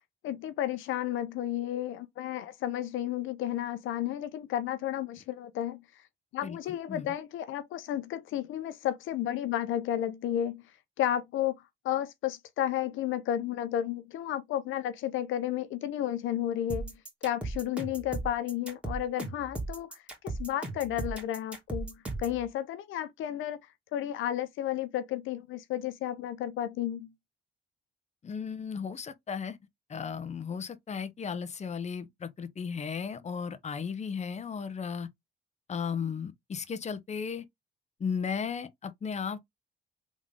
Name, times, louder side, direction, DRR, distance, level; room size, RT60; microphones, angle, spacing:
voice 1, 0.2-5.8 6.3-10.6 11.0-11.6 11.8-23.6 23.9-27.1, left 11 dB, 85° left, 0.7 m, -32 dB
sound 1, 16.7-22.4, right 2 dB, 5° right, 2.2 m, -36 dB
voice 2, 28.2-29.6 29.9-35.1 35.7-37.4 38.0-39.5, left 6 dB, 35° left, 0.8 m, -35 dB
3.7 x 3.6 x 3.6 m
cardioid pair, 90°, 20 cm